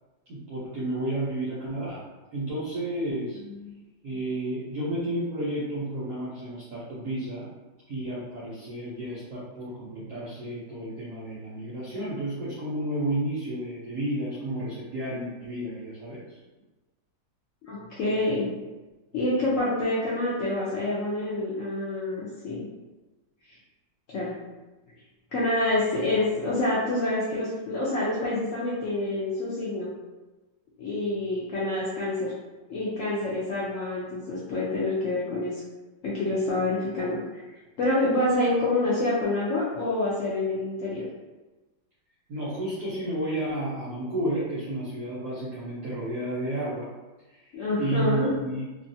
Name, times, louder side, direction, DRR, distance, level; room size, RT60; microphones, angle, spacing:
voice 1, 0.3-2.0 2.3-3.4 4.0-7.5 7.9-16.4 42.3-46.9 47.3-48.6, right 1 dB, 65° right, -8 dB, 1.1 m, -31 dB
voice 2, 17.6-18.5 19.1-22.7 23.5-23.6 24.1-24.3 25.3-29.9 30.8-32.3 32.7-35.6 36.0-37.2 37.8-41.0 47.5-48.3, left 2 dB, 85° left, -7 dB, 0.7 m, -27 dB
3.1 x 2.4 x 2.6 m, 1.2 s
omnidirectional pair, 2.1 m